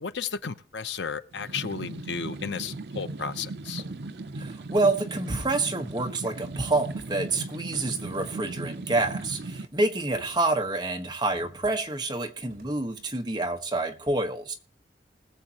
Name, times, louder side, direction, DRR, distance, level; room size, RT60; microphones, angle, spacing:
voice 1, 0.0-3.8, left 6 dB, 85° left, 0.8 m, -34 dB
sound 1, 1.3-9.7, right 2 dB, 65° right, 0.6 m, -37 dB
sound 2, 1.7-1.9 2.3-2.7 3.0-4.2 4.4-4.7 5.1-6.2 6.5-7.2 7.7-8.3 8.6-9.7 10.1-10.9 11.3-12.0 12.5-12.8, right 1 dB, 50° right, 4.4 m, -51 dB
voice 2, 4.4-14.5, right 2 dB, 25° right, 1.2 m, -28 dB
20.5 x 7.5 x 2.9 m
head